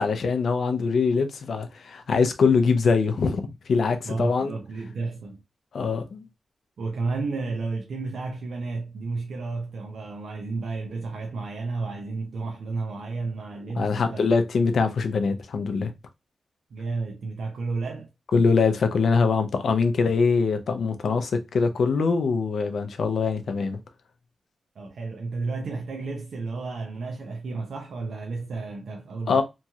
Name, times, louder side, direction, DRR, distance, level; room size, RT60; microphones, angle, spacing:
voice 1, 0.0-4.5 5.7-6.3 13.8-15.9 18.3-23.8 29.3-29.4, left 4 dB, 75° left, 0.5 m, -23 dB
voice 2, 4.0-5.4 6.8-14.3 16.7-18.1 24.8-29.4, right 3 dB, 85° right, 0.5 m, -32 dB
3.0 x 2.3 x 2.7 m
wide cardioid pair, 145°, 0 cm